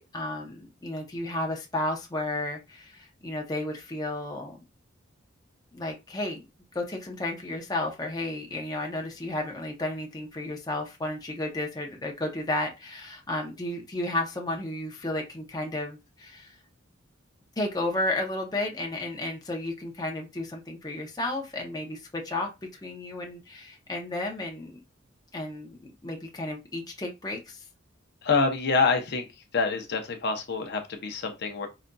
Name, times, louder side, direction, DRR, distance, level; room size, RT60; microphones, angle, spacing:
voice 1, 0.1-4.6 5.7-6.4 6.7-16.6 17.6-24.8 25.3-27.6, left 1 dB, 20° left, 1 dB, 0.7 m, -33 dB
voice 2, 28.2-29.2 29.5-31.7, left 4 dB, 60° left, 5 dB, 0.7 m, -26 dB
4.9 x 2.6 x 2.2 m, 0.24 s
head